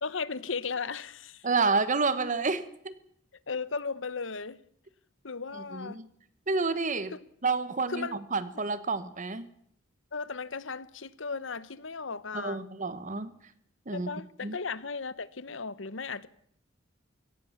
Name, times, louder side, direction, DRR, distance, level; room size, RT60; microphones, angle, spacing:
voice 1, 0.0-1.5 3.5-4.6 5.2-6.0 7.1-7.2 7.9-8.2 10.1-12.6 13.9-16.3, left 4 dB, 85° left, 1.1 m, -36 dB
voice 2, 1.4-2.9 5.7-6.1 6.5-7.1 7.4-9.5 12.3-13.3 13.9-14.1 14.4-14.6, right 4 dB, 40° right, 1.1 m, -29 dB
23.0 x 17.5 x 7.2 m
head